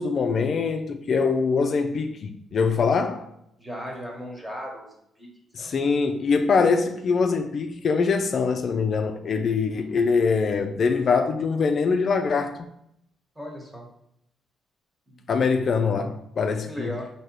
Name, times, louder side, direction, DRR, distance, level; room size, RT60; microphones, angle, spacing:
voice 1, 0.0-3.3 5.5-12.7 15.3-16.9, left 5 dB, 50° left, 0.3 m, -23 dB
voice 2, 3.6-5.3 5.6-5.8 9.7-10.0 13.3-13.9 15.1-15.3 16.7-17.1, equal, 15° right, 1.2 m, -37 dB
4.5 x 2.8 x 3.0 m
cardioid pair, 90°, 0 cm